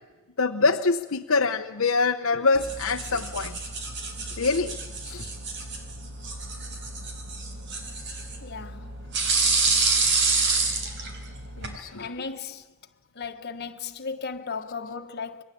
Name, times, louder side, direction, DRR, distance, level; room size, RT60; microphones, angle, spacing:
voice 1, 0.4-3.6 4.4-4.8 5.0-5.3 11.6-12.1, left 4 dB, 75° left, 0.9 m, -25 dB
sound 1, 2.5-11.8, right 4 dB, 60° right, 4.2 m, -28 dB
voice 2, 8.4-8.9 12.0-12.7 13.1-15.4, left 5 dB, 50° left, 1.4 m, -35 dB
28.0 x 23.0 x 8.5 m
head